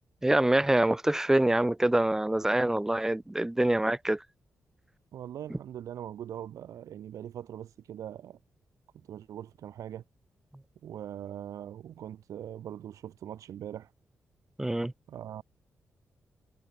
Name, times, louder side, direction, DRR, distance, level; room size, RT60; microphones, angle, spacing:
voice 1, 0.2-4.2 5.5-5.6 14.6-14.9, right 1 dB, 10° right, 0.4 m, -25 dB
voice 2, 5.1-8.4 8.9-10.0 10.8-13.9 15.1-15.4, right 10 dB, 85° right, 0.9 m, -41 dB
cardioid pair, 95°, 5 cm